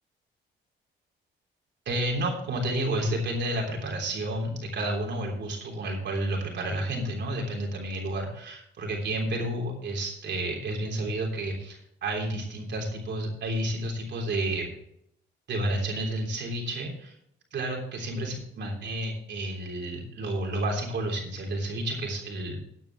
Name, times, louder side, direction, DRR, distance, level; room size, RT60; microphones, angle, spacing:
voice 1, 1.8-14.7 15.5-17.1 17.5-22.6, right 1 dB, 65° right, 0 dB, 3.4 m, -31 dB
15.0 x 9.1 x 3.1 m, 0.72 s
cardioid pair, 90°, 20 cm